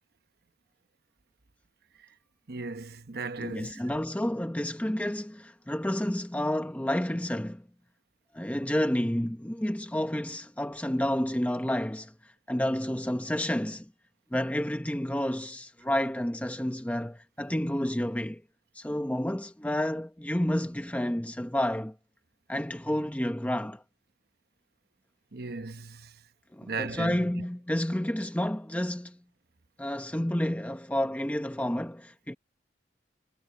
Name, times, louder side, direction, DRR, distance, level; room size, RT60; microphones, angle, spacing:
voice 1, 2.5-3.8 25.3-26.1 26.6-27.3, right 4 dB, 55° right, 1.0 m, -36 dB
voice 2, 3.4-7.6 8.3-13.9 14.3-18.4 18.7-21.9 22.5-23.8 26.5-29.2 29.8-32.3, left 1 dB, 10° left, 0.8 m, -30 dB
head